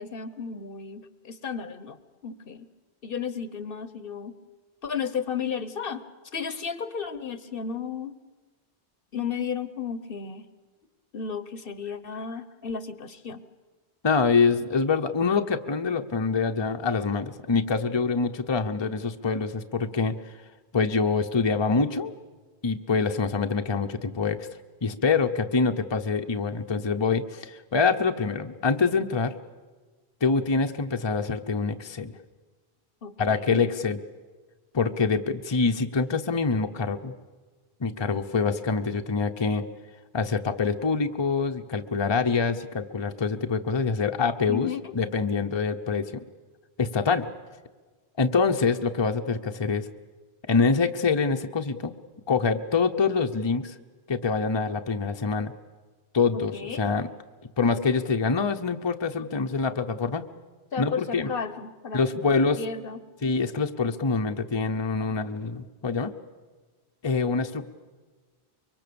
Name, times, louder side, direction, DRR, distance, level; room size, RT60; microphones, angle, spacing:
voice 1, 0.0-2.7 3.0-4.4 4.8-8.2 9.1-10.5 11.1-13.4 33.0-33.7 44.5-44.9 56.3-56.8 60.7-63.0, left 6 dB, 60° left, 13 dB, 1.1 m, -34 dB
voice 2, 14.0-20.2 20.7-22.1 22.6-24.5 24.8-29.3 30.2-32.1 33.2-34.0 34.7-37.1 37.8-39.6 40.1-46.2 46.8-47.3 48.2-49.9 50.5-51.9 52.3-53.7 54.1-55.5 56.1-57.1 57.6-60.2 60.8-61.3 61.9-62.6 63.2-66.1 67.0-67.6, left 4 dB, 30° left, 6 dB, 0.8 m, -25 dB
25.0 x 23.0 x 7.0 m, 1.4 s
omnidirectional pair, 1.1 m